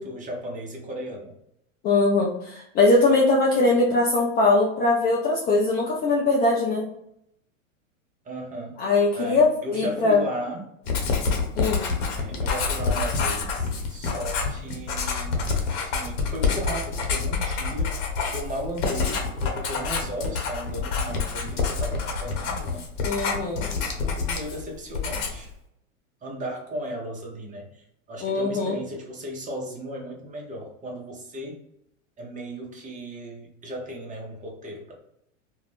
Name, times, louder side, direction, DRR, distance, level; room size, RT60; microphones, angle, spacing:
voice 1, 0.0-1.4 8.2-8.8 9.2-10.6 12.1-15.4 15.7-22.9 23.7-25.5 26.2-31.6 32.2-34.9, equal, 20° right, 0 dB, 0.7 m, -36 dB
voice 2, 1.8-6.9 8.8-10.2 11.6-11.9 15.0-15.2 23.0-23.7 28.2-28.8, left 3 dB, 25° left, -2 dB, 0.3 m, -21 dB
Writing, 10.9-24.7 24.9-25.5, left 4 dB, 65° left, 0.9 m, -27 dB
2.4 x 2.1 x 3.3 m, 0.79 s
hypercardioid pair, 105°, 39 cm